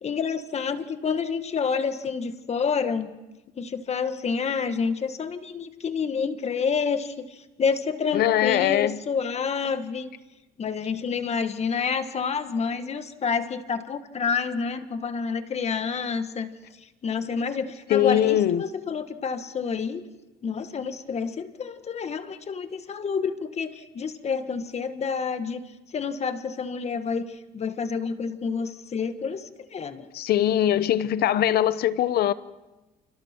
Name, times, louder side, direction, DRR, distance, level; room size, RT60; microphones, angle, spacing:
voice 1, 0.0-3.1 3.6-10.1 10.6-16.5 17.0-20.0 20.4-25.6 25.9-30.1, left 5 dB, 40° left, 10 dB, 1.6 m, -28 dB
voice 2, 8.1-9.0 17.9-18.6 30.1-32.3, left 11 dB, 65° left, 15 dB, 0.9 m, -22 dB
29.5 x 25.5 x 4.5 m, 1.1 s
cardioid pair, 110°, 17 cm